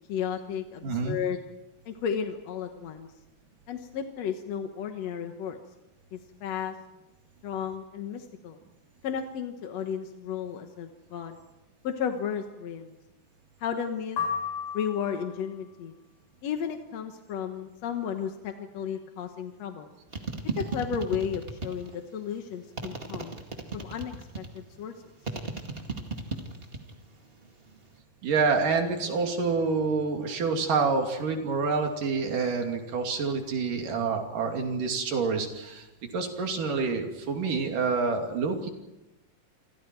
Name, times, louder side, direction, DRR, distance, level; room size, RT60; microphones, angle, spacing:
voice 1, 0.1-1.4 1.9-3.1 3.7-5.6 6.1-6.7 7.4-8.6 9.0-11.4 11.8-12.9 13.6-14.2 14.7-15.9 16.4-19.9 20.6-23.3 23.7-24.9, left 7 dB, 60° left, 5 dB, 2.1 m, -33 dB
voice 2, 0.8-1.2 28.2-35.9 36.1-38.7, right 4 dB, 70° right, 3 dB, 4.3 m, -27 dB
sound 1, 14.2-15.4, left 7 dB, 85° left, 6.0 m, -33 dB
sound 2, 20.1-22.0 22.8-24.6 25.2-26.9 27.2-27.8, right 3 dB, 20° right, 1.6 m, -35 dB
29.0 x 24.5 x 4.6 m, 0.99 s
omnidirectional pair, 4.0 m